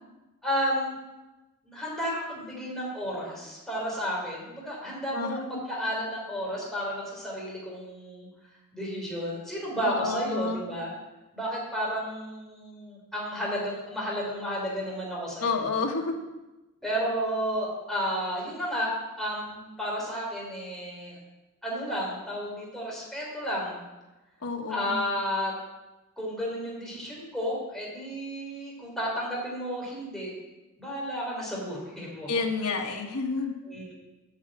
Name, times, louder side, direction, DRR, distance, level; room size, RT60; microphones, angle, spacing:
voice 1, 0.4-0.9 1.7-8.3 8.7-10.9 11.3-15.7 16.8-21.2 21.6-23.8 24.7-25.5 26.2-30.3 30.8-32.3 33.7-33.9, equal, ahead, -5 dB, 3.6 m, -32 dB
voice 2, 5.1-5.5 9.8-10.7 15.4-16.2 24.4-25.0 32.3-33.5, left 4 dB, 85° left, 2 dB, 1.5 m, -30 dB
9.1 x 6.2 x 7.5 m, 1.1 s
head